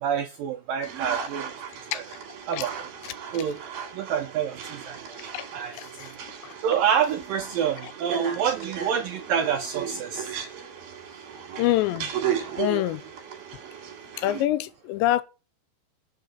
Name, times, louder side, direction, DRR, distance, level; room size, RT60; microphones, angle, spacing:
voice 1, 0.0-1.6 1.9-2.0 2.5-2.7 3.3-3.6 3.9-5.0 5.5-5.8 6.6-10.4, right 8 dB, 80° right, 2.0 m, -27 dB
sound 1, 0.8-14.4, right 8 dB, 60° right, 3.9 m, -36 dB
voice 2, 5.7-6.1 11.6-12.1 12.6-13.0 14.2-15.2, left 14 dB, 85° left, 3.0 m, -25 dB
18.5 x 6.2 x 4.0 m
omnidirectional pair, 5.1 m